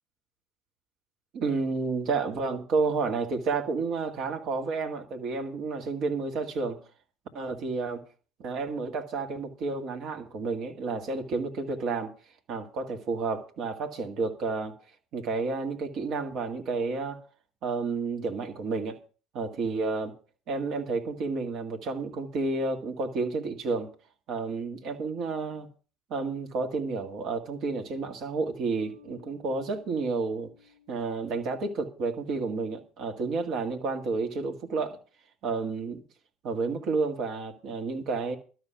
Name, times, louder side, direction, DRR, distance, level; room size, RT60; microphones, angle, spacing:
voice 1, 1.3-6.8 7.3-8.0 8.4-12.1 12.5-14.7 15.1-17.2 17.6-19.0 19.3-20.1 20.5-23.9 24.3-25.7 26.1-30.5 30.9-35.0 35.4-36.0 36.4-38.4, right 4 dB, 50° right, 1.9 m, -31 dB
Bass guitar, 28.8-32.3, left 4 dB, 65° right, 3.5 m, -57 dB
12.0 x 6.4 x 8.3 m
figure-of-eight pair, 60°, 0 cm